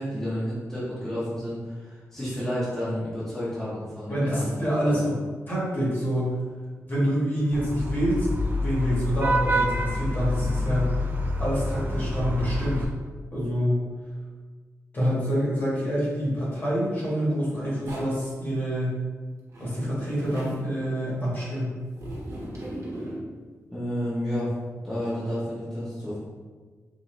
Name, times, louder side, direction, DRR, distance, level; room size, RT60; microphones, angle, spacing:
voice 1, 0.0-4.5 4.8-5.0 23.7-24.5 24.8-26.2, equal, 10° left, -11 dB, 0.9 m, -31 dB
voice 2, 4.1-5.2 5.5-6.4 6.9-8.3 8.6-10.9 11.4-12.9 13.3-13.8 14.9-19.0 19.6-21.8, equal, 35° left, -7 dB, 1.3 m, -26 dB
Vehicle horn car horn honking / Traffic noise roadway noise, 7.5-12.8, left 1 dB, 35° right, 0.3 m, -27 dB
Zipper (clothing), 17.9-18.3 19.5-20.6 22.0-23.2, right 1 dB, 55° right, 1.0 m, -38 dB
3.9 x 2.6 x 3.1 m, 1.4 s
wide cardioid pair, 130°, 6 cm